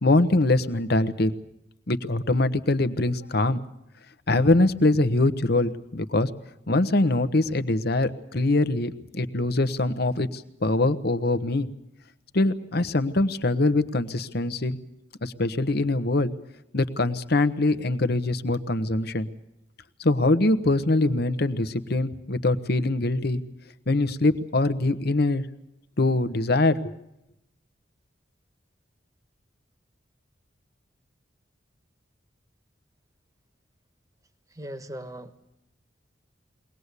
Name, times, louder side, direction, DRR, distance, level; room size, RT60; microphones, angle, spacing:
voice 1, 0.0-1.3 1.9-3.6 4.3-6.3 6.7-11.7 12.3-14.8 15.2-16.3 16.7-19.3 20.0-23.4 23.9-25.4 26.0-26.9, left 2 dB, 55° left, 13 dB, 1.1 m, -23 dB
voice 2, 34.5-35.4, right 1 dB, 20° right, 11 dB, 1.3 m, -39 dB
22.5 x 19.0 x 8.3 m, 0.85 s
head